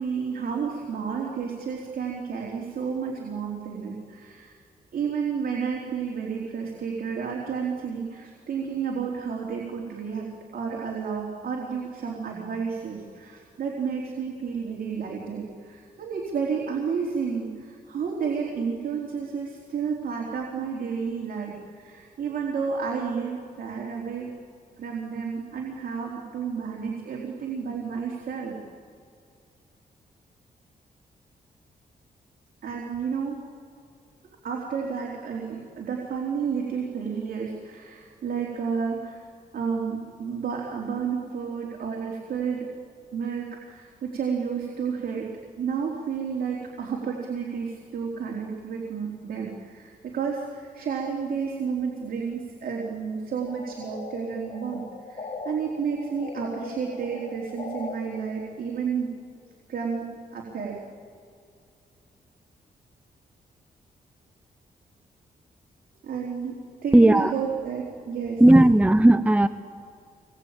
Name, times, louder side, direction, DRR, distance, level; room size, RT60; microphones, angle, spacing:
voice 1, 0.0-4.5 4.9-10.3 10.5-24.3 24.8-28.6 32.6-33.4 34.2-39.2 39.5-42.7 43.1-45.3 45.6-59.1 59.7-60.8 66.0-68.4, right 6 dB, 70° right, -2 dB, 3.7 m, -31 dB
sound 1, 53.5-55.5 55.9-57.9, left 4 dB, 45° left, 4.1 m, -39 dB
voice 2, 66.9-67.3 68.4-69.5, right 1 dB, 10° right, 12 dB, 0.8 m, -15 dB
26.0 x 22.0 x 9.1 m, 2.4 s
cardioid pair, 75°, 16 cm